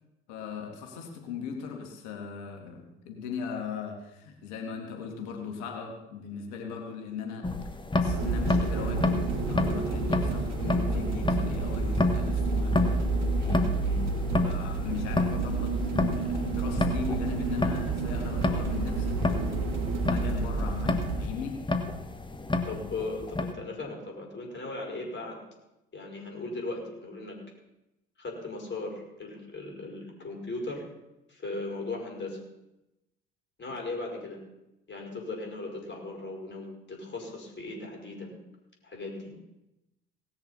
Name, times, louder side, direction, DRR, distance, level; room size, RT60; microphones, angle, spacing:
voice 1, 0.3-7.5 7.9-13.0 14.4-21.6, left 6 dB, 75° left, 3 dB, 2.4 m, -38 dB
sound 1, 7.4-23.5, left 2 dB, 15° left, 1.7 m, -31 dB
sound 2, 8.1-21.3, right 3 dB, 65° right, 2.0 m, -30 dB
voice 2, 13.4-14.0 22.6-25.4 25.9-27.4 28.2-30.9 31.3-32.4 33.6-34.4 34.9-38.3 38.8-39.3, left 3 dB, 40° left, 1 dB, 5.3 m, -37 dB
18.5 x 6.9 x 5.7 m, 0.92 s
hypercardioid pair, 60°, 29 cm